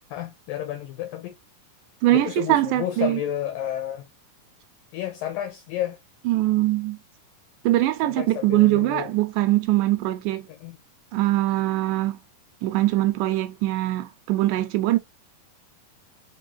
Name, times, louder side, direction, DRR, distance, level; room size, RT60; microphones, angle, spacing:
voice 1, 0.1-1.3 2.1-4.1 4.9-6.0 8.0-9.1 10.5-10.8, left 11 dB, 75° left, 2.3 m, -31 dB
voice 2, 2.0-3.2 6.3-7.0 7.6-10.5 11.1-12.2 12.6-15.0, right 16 dB, 80° right, 1.9 m, -22 dB
5.3 x 3.2 x 2.7 m
omnidirectional pair, 4.3 m